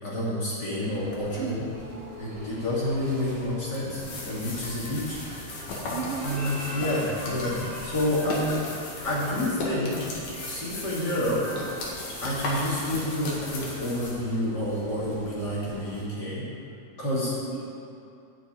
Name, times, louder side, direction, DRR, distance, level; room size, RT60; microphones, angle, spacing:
voice 1, 0.0-1.6 2.2-5.7 6.2-10.1 10.5-11.4 12.2-16.5 17.0-17.3, left 1 dB, 35° left, -7 dB, 2.8 m, -29 dB
sound 1, 0.8-16.0, equal, 30° right, 2.5 m, -45 dB
voice 2, 1.4-2.1 5.9-7.1 17.1-17.3 17.5-17.7, right 6 dB, 70° right, 0 dB, 1.4 m, -37 dB
sound 2, 3.7-14.1, left 2 dB, 65° left, 3.1 m, -36 dB
11.0 x 6.0 x 8.9 m, 2.7 s
omnidirectional pair, 3.6 m